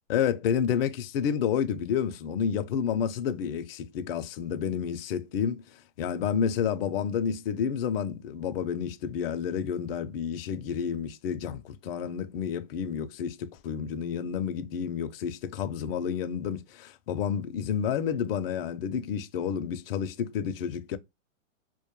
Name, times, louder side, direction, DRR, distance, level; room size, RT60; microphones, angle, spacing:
voice 1, 0.1-5.6 6.0-21.0, left 8 dB, 50° left, 0.4 m, -30 dB
2.1 x 2.1 x 2.9 m
hypercardioid pair, 140°, 38 cm